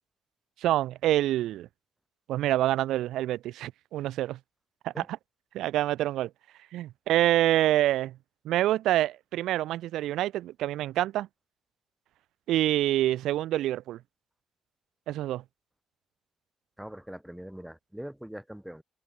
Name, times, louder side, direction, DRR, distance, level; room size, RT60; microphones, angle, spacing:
voice 1, 0.6-1.7 2.3-4.4 4.8-4.9 5.5-6.3 6.7-8.1 8.4-11.3 12.5-14.0 15.1-15.4, right 14 dB, 85° right, 0.3 m, -26 dB
voice 2, 16.8-18.8, equal, 5° right, 1.9 m, -42 dB
cardioid pair, 90°, 0 cm